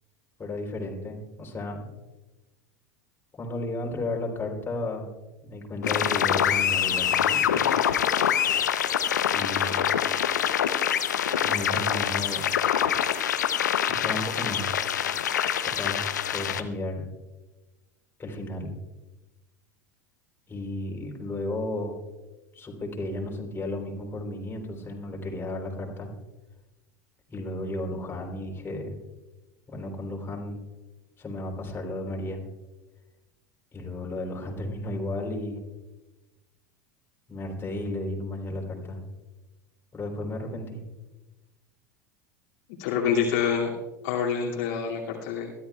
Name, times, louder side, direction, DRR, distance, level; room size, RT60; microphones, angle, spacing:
voice 1, 0.4-1.9 3.3-5.1 5.4-7.7 9.3-9.9 11.4-12.5 13.9-14.8 15.6-17.0 18.2-18.7 20.5-22.0 22.5-26.1 27.3-29.0 29.7-30.6 31.2-32.4 33.7-35.6 37.3-39.0 39.9-40.8, left 1 dB, 25° left, 0 dB, 3.6 m, -33 dB
sound 1, 5.8-16.6, left 9 dB, 80° left, 0.7 m, -25 dB
voice 2, 42.8-43.8 44.0-45.5, left 7 dB, 65° left, -4 dB, 2.5 m, -26 dB
22.0 x 13.0 x 2.4 m, 1.1 s
hypercardioid pair, 85°, 9 cm